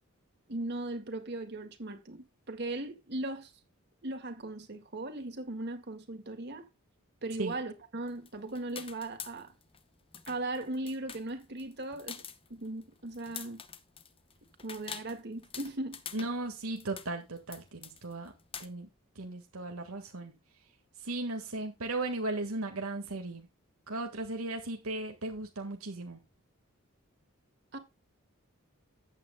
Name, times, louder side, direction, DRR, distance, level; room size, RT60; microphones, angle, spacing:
voice 1, 0.5-3.5 4.0-6.6 7.2-9.5 10.3-12.2 12.5-13.6 14.6-16.0 27.7-27.8, right 2 dB, 50° right, 1.9 m, -38 dB
sound 1, 8.1-9.8 10.1-18.7, left 7 dB, 25° left, 0.9 m, -46 dB
voice 2, 16.1-18.3 18.6-18.9 19.2-20.3 21.0-23.5 23.9-26.2, right 2 dB, 90° right, 1.7 m, -36 dB
14.0 x 8.8 x 2.2 m
head